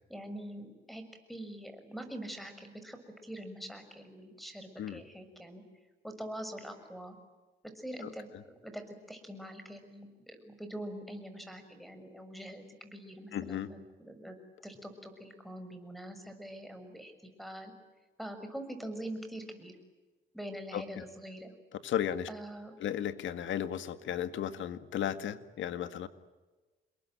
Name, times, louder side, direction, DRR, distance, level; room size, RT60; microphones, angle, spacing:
voice 1, 0.1-1.0 1.3-5.6 6.0-7.1 7.7-8.3 8.6-14.3 14.6-17.1 17.4-17.7 18.2-19.7 20.3-21.5 22.3-22.8, right 1 dB, ahead, 9 dB, 6.6 m, -44 dB
voice 2, 8.0-8.4 13.3-13.7 20.7-21.0 21.7-22.3 22.8-26.1, left 10 dB, 75° left, 11 dB, 1.9 m, -35 dB
28.5 x 22.0 x 9.1 m, 1.2 s
cardioid pair, 90°, 20 cm